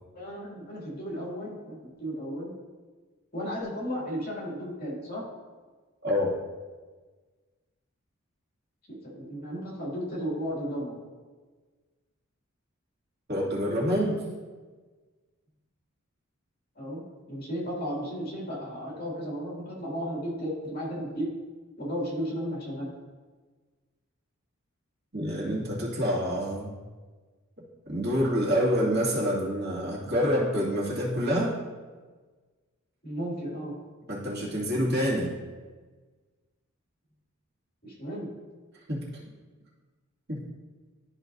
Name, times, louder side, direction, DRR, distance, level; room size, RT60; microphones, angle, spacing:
voice 1, 0.1-2.5 3.3-5.2 8.9-11.0 16.8-21.3 21.8-22.9 33.0-33.8 37.8-38.3, equal, 45° left, -4 dB, 2.4 m, -34 dB
voice 2, 6.0-6.4 13.3-14.2 25.1-26.7 27.9-31.5 34.1-35.3 38.9-39.1 40.3-40.4, equal, 50° right, -6 dB, 2.4 m, -27 dB
12.5 x 5.0 x 2.6 m, 1.4 s
head